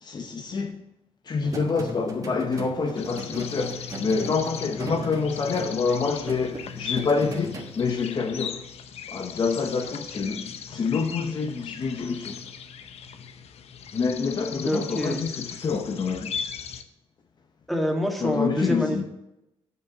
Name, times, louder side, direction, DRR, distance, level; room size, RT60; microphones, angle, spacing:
voice 1, 0.0-0.8 1.3-8.6 9.1-12.4 13.9-16.3 18.2-19.0, left 5 dB, 45° left, 0.8 m, -27 dB
sound 1, 1.4-8.1, right 2 dB, 35° right, 1.3 m, -39 dB
sound 2, 3.0-16.8, left 7 dB, 85° left, 0.7 m, -38 dB
voice 2, 14.6-15.2 17.7-19.0, equal, ahead, 1.6 m, -26 dB
7.7 x 5.9 x 6.3 m
wide cardioid pair, 145°, 10 cm